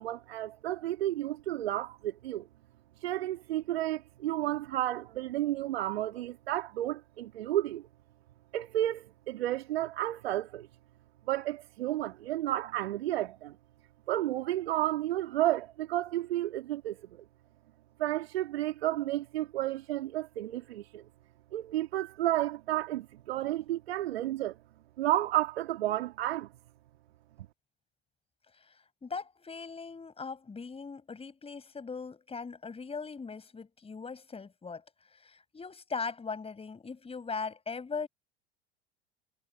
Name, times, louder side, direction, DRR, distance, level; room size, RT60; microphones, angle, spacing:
voice 1, 0.0-2.5 3.0-7.8 8.5-10.7 11.3-13.6 14.1-17.2 18.0-21.0 21.5-24.6 25.0-26.5, right 14 dB, 70° right, 3.3 m, -32 dB
voice 2, 29.0-34.8 35.1-38.1, left 4 dB, 20° left, 5.9 m, -39 dB
figure-of-eight pair, 80°, 32 cm